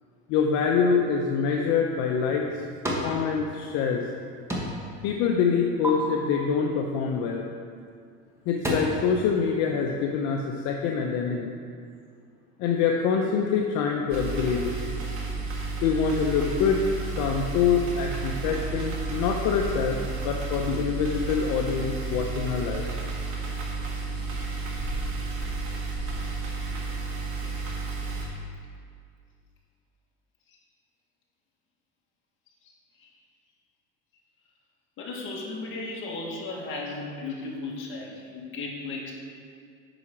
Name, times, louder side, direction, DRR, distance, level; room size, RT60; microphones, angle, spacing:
voice 1, 0.3-2.5 3.0-4.1 5.0-7.4 8.5-11.5 12.6-14.7 15.8-16.8 17.2-22.9, left 6 dB, 65° left, 1 dB, 0.8 m, -25 dB
sound 1, 2.1-3.2 3.5-4.2 4.5-4.9 5.3-5.9 7.7-7.9 8.3-8.7, right 1 dB, 10° right, 1.3 m, -32 dB
sound 2, 14.1-28.3, right 3 dB, 50° right, 1.8 m, -32 dB
voice 2, 35.0-39.1, left 3 dB, 45° left, -2 dB, 1.8 m, -35 dB
9.0 x 5.0 x 5.9 m, 2.2 s
cardioid pair, 145°, 29 cm